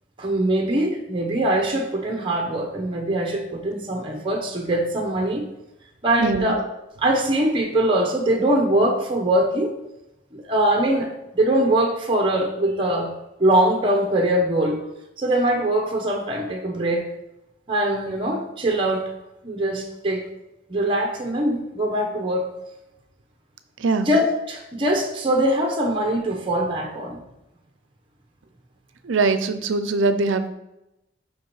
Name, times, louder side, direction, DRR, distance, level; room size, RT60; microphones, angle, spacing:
voice 1, 0.2-5.4 6.0-6.6 7.0-9.7 10.3-13.1 13.4-14.8 15.2-17.1 17.7-19.1 19.4-20.2 20.7-22.5 24.0-27.2, right 1 dB, 25° right, 2 dB, 0.8 m, -22 dB
voice 2, 6.2-6.5 23.8-24.1 29.0-30.5, right 3 dB, 75° right, 10 dB, 0.6 m, -22 dB
5.8 x 4.7 x 4.5 m, 0.92 s
head